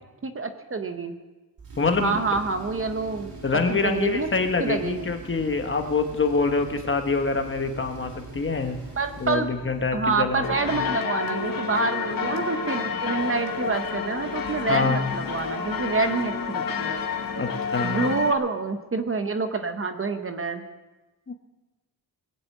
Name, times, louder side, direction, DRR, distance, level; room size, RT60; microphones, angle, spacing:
voice 1, 0.2-1.2 2.0-3.4 3.7-4.3 4.6-5.2 9.0-9.5 9.9-17.0 17.8-20.6, right 4 dB, 35° right, 7 dB, 1.0 m, -27 dB
Tools, 1.6-11.1, right 3 dB, 65° right, 3.8 m, -42 dB
voice 2, 1.8-2.2 3.4-8.8 9.2-10.4 10.7-10.8 14.7-15.1 17.4-18.1 21.3-21.4, left 4 dB, 30° left, 5 dB, 1.2 m, -25 dB
sound 1, 10.4-18.3, left 6 dB, 60° left, 1.5 m, -29 dB
20.5 x 7.6 x 8.5 m, 1.2 s
wide cardioid pair, 160°, 39 cm